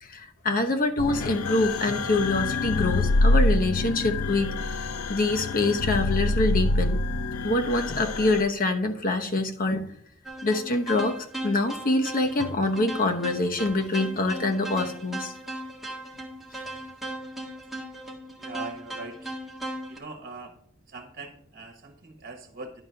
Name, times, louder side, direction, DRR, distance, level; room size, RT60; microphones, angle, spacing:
voice 1, 0.0-7.0 7.4-9.9 10.4-15.3, left 2 dB, 40° left, 4 dB, 1.0 m, -25 dB
sound 1, 1.0-8.4, left 2 dB, 85° left, 0.5 m, -26 dB
sound 2, 10.3-20.0, right 1 dB, ahead, 1.6 m, -37 dB
voice 2, 18.4-19.2 19.9-20.5 20.9-22.8, right 3 dB, 45° right, 4 dB, 1.4 m, -41 dB
11.0 x 4.0 x 5.8 m, 0.63 s
head